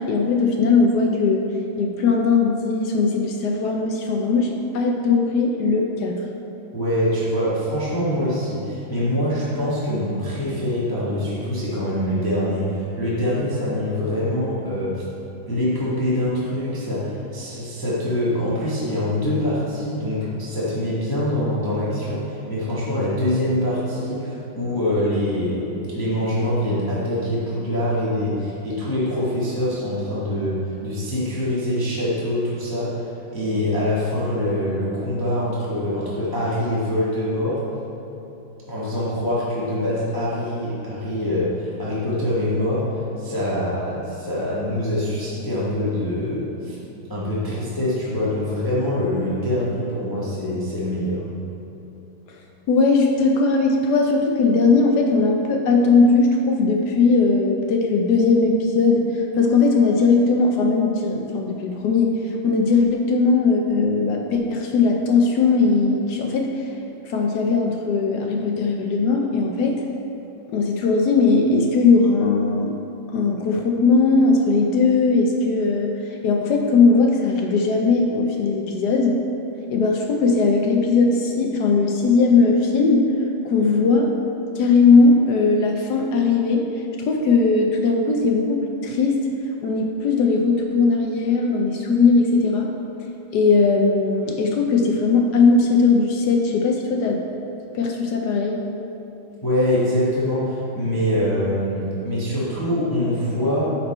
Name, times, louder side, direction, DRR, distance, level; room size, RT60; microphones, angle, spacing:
voice 1, 0.0-1.4 1.8-6.2 52.7-62.2 62.4-66.7 67.1-69.7 70.5-72.7 73.1-79.2 79.7-83.0 83.4-84.1 84.5-86.6 87.0-89.1 89.6-92.7 93.3-97.2 97.7-98.6, left 4 dB, 70° left, 2 dB, 1.0 m, -19 dB
voice 2, 6.7-15.0 15.5-37.6 38.7-46.8 47.1-51.2 99.4-103.7, left 1 dB, 15° left, -8 dB, 1.1 m, -24 dB
10.5 x 4.4 x 4.3 m, 2.9 s
omnidirectional pair, 2.2 m